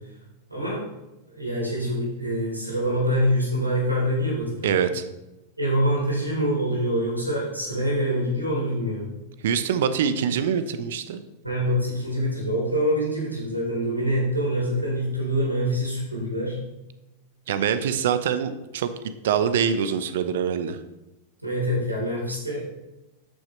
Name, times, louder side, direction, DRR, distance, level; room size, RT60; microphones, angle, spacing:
voice 1, 0.5-0.9 1.3-4.7 5.6-9.0 11.4-16.6 21.4-22.7, equal, 85° right, -3 dB, 3.9 m, -25 dB
voice 2, 4.6-5.0 9.4-11.2 17.5-18.9 19.2-20.8, right 7 dB, 60° right, 11 dB, 0.9 m, -24 dB
13.0 x 8.9 x 3.3 m, 0.98 s
figure-of-eight pair, 90°, 0 cm